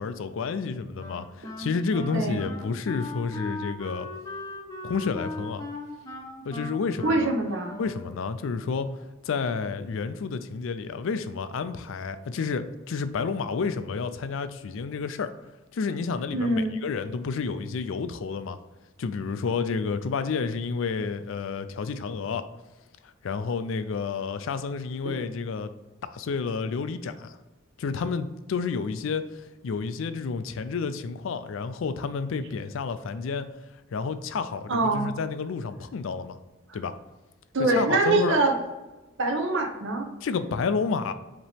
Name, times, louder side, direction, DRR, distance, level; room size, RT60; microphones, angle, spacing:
voice 1, 0.0-4.1 4.8-5.6 6.5-7.3 7.8-15.3 15.7-18.6 19.0-22.4 23.2-25.7 26.1-27.4 27.8-33.5 33.9-36.4 36.7-36.9 37.6-38.4 40.2-41.1, left 5 dB, 70° left, 11 dB, 0.4 m, -30 dB
Wind instrument woodwind instrument, 1.0-8.4, left 1 dB, 20° left, 0.7 m, -39 dB
voice 2, 7.0-7.8 16.3-16.8 25.0-25.2 34.7-35.1 37.5-38.5 39.2-40.1, right 2 dB, 65° right, 2 dB, 0.8 m, -24 dB
5.2 x 2.9 x 3.4 m, 1.1 s
head